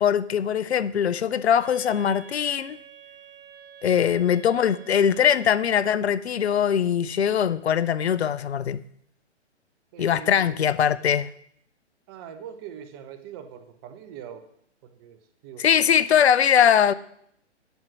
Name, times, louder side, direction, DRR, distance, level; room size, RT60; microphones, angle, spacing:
voice 1, 0.0-2.8 3.8-8.8 10.0-11.3 15.6-16.9, left 8 dB, 65° left, 16 dB, 0.6 m, -21 dB
Wind instrument woodwind instrument, 1.6-6.0, right 9 dB, 40° right, 1.7 m, -48 dB
voice 2, 3.8-4.2 9.9-10.5 12.1-14.5 14.8-15.9, right 9 dB, 20° right, 8 dB, 0.6 m, -42 dB
7.9 x 7.2 x 6.2 m, 0.69 s
figure-of-eight pair, 125°, 35 cm